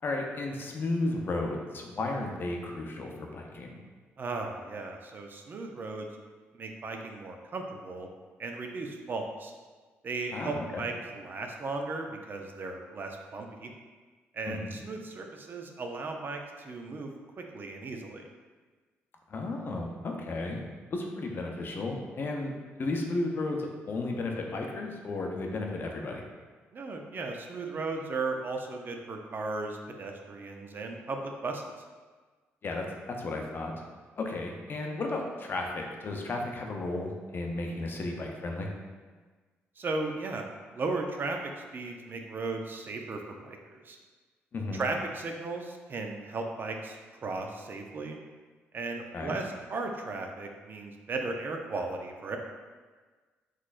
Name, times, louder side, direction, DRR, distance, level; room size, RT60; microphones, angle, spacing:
voice 1, 0.0-3.8 10.3-10.8 14.5-14.8 19.3-20.6 20.9-26.2 32.6-33.8 34.2-38.7 44.5-44.8 49.1-49.3, left 2 dB, 50° left, 1 dB, 0.6 m, -34 dB
voice 2, 4.2-6.1 6.5-8.1 8.4-9.5 10.0-13.7 14.3-18.3 26.7-31.7 39.8-40.4 40.7-44.0 44.7-47.0 47.2-48.2 48.7-52.4, right 3 dB, 45° right, 3 dB, 0.4 m, -36 dB
3.9 x 3.1 x 2.4 m, 1.4 s
cardioid pair, 70°, 5 cm